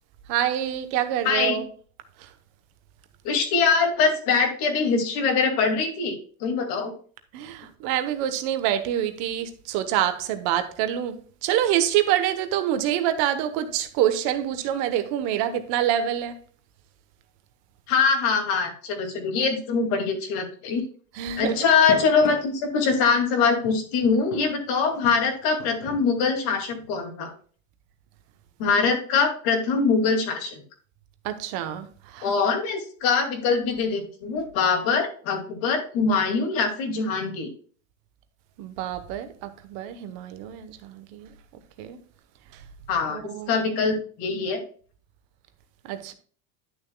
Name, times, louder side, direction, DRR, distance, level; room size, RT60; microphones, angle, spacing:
voice 1, 0.3-1.6 7.3-11.2 11.4-16.3 21.2-21.5 31.2-32.3 38.6-41.3 41.8-42.0 43.1-43.5 45.8-46.1, right 11 dB, 55° right, 1.1 m, -26 dB
voice 2, 1.2-1.6 3.2-6.2 6.4-6.9 17.9-20.8 21.4-27.3 28.6-30.5 32.2-37.5 42.9-44.6, left 5 dB, 55° left, 2.4 m, -23 dB
sound 1, 21.3-23.1 23.6-26.9, left 4 dB, 85° left, 2.7 m, -40 dB
11.0 x 6.6 x 2.2 m
supercardioid pair, 145°, 43 cm